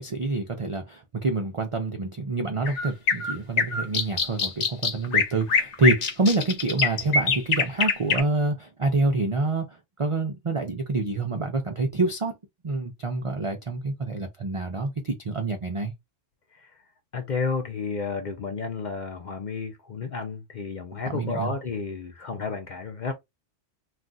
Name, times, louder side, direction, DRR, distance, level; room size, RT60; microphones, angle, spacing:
voice 1, 0.0-12.3 12.6-15.9 21.0-21.5, right 3 dB, 60° right, 0.3 m, -27 dB
sound 1, 2.7-8.2, left 5 dB, 70° left, 1.1 m, -23 dB
voice 2, 17.1-23.1, left 4 dB, 50° left, 0.5 m, -31 dB
2.4 x 2.4 x 3.8 m
omnidirectional pair, 1.3 m